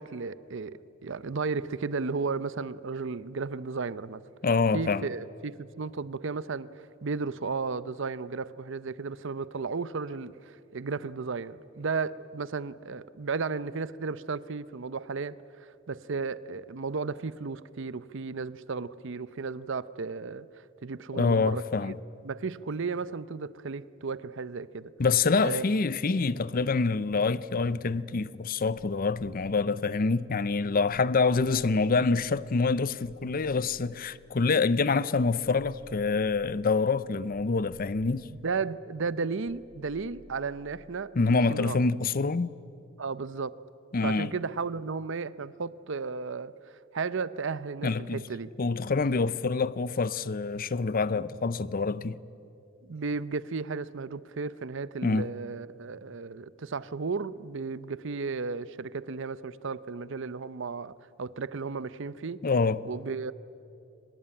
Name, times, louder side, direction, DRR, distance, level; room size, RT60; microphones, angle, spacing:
voice 1, 0.0-4.2 4.7-6.7 7.0-20.5 20.8-21.9 22.2-24.9 25.4-25.6 38.3-41.8 43.0-43.6 44.0-46.5 46.9-48.5 52.8-62.4 62.8-63.3, right 4 dB, 65° right, 0.7 m, -34 dB
voice 2, 4.4-5.1 21.1-21.9 25.0-38.3 41.1-42.5 43.9-44.3 47.8-48.2 48.6-52.2 55.0-55.3 62.4-62.8, left 4 dB, 45° left, 0.6 m, -26 dB
sound 1, 39.4-41.1, left 1 dB, 5° right, 3.7 m, -56 dB
23.5 x 21.0 x 8.9 m
head